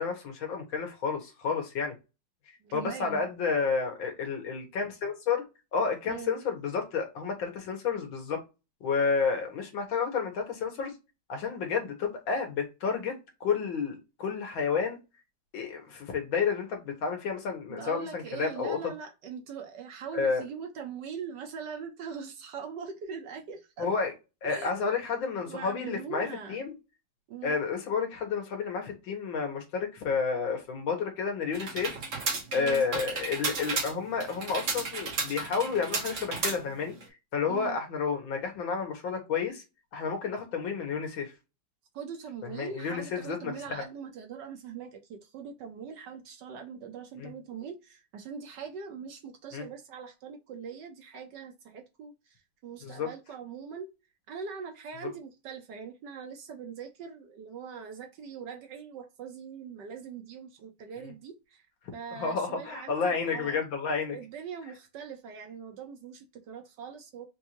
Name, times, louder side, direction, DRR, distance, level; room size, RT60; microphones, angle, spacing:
voice 1, 0.0-1.9 2.7-5.4 5.7-8.4 8.8-10.9 11.3-15.0 15.5-18.8 20.1-20.4 23.8-24.1 24.4-26.7 27.4-32.0 32.5-36.9 37.3-39.6 39.9-41.3 42.4-43.8 47.2-47.3 49.5-49.6 52.8-53.1 62.1-64.2, left 5 dB, 75° left, 2.0 m, -31 dB
voice 2, 2.6-3.3 6.0-6.4 17.7-23.9 24.4-24.9 25.5-26.7 27.3-27.6 32.5-32.8 37.5-37.8 41.9-53.9 54.3-61.7 61.9-63.6 64.1-67.3, right 6 dB, 65° right, 1.3 m, -42 dB
sound 1, 31.5-37.0, right 4 dB, 45° right, 1.3 m, -33 dB
4.5 x 2.6 x 2.9 m
omnidirectional pair, 2.2 m